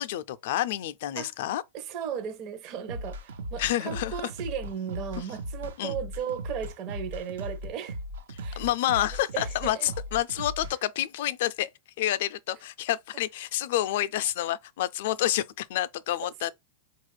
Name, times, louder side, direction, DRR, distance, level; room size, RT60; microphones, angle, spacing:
voice 1, 0.0-1.6 3.6-4.2 5.2-5.3 5.8-6.0 8.3-11.7 12.0-16.5, left 13 dB, 65° left, 0.4 m, -29 dB
voice 2, 1.7-8.0 8.4-8.6 9.3-9.9 16.2-16.5, right 8 dB, 45° right, 0.6 m, -36 dB
sound 1, 2.9-10.7, equal, 85° right, 0.7 m, -37 dB
4.1 x 2.3 x 3.2 m
hypercardioid pair, 125°, 0 cm